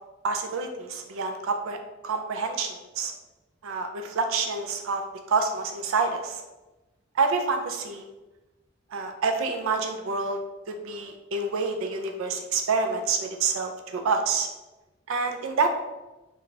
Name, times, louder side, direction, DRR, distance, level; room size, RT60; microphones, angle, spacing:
voice 1, 0.2-3.1 3.6-5.0 5.3-6.4 7.1-8.1 8.9-10.4 10.7-14.5 15.1-15.7, right 4 dB, 85° right, 5 dB, 0.4 m, -27 dB
3.2 x 2.3 x 3.9 m, 1.1 s
head